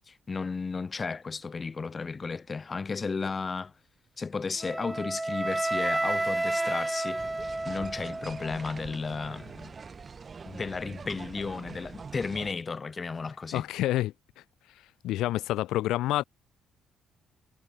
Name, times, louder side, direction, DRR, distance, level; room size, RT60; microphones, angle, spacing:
voice 1, 0.0-3.7 4.2-7.2 7.6-9.7 10.5-13.6, left 4 dB, 35° left, 0.9 m, -34 dB
Wind instrument woodwind instrument, 4.6-8.7, right 2 dB, 15° right, 0.4 m, -30 dB
sound 1, 7.2-12.5, right 5 dB, 40° right, 1.3 m, -44 dB
voice 2, 13.5-14.1 15.0-16.2, left 15 dB, 90° left, 0.8 m, -27 dB
cardioid pair, 90°, 0 cm